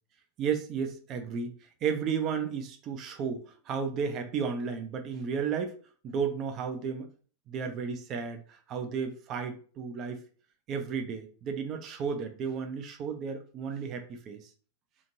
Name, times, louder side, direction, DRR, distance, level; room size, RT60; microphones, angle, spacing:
voice 1, 0.4-1.5 1.8-5.8 6.0-7.1 7.5-10.2 10.7-14.5, right 6 dB, 35° right, 7 dB, 0.4 m, -33 dB
2.8 x 2.5 x 2.6 m, 0.41 s
figure-of-eight pair, 90°, 0 cm